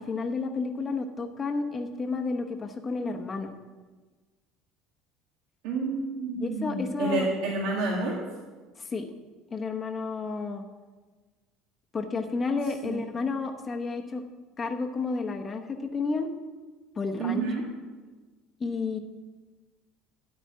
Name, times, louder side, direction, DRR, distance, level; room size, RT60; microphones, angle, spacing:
voice 1, 0.0-3.5 6.4-7.3 8.8-9.1 9.5-10.6 11.9-14.2 14.6-16.3 17.0-17.4 18.6-19.0, left 4 dB, 20° left, 4 dB, 0.9 m, -31 dB
voice 2, 5.6-8.2 12.8-13.2 17.2-17.7, right 3 dB, 80° right, -4 dB, 2.0 m, -29 dB
13.0 x 5.0 x 8.5 m, 1.3 s
cardioid pair, 165°, 0 cm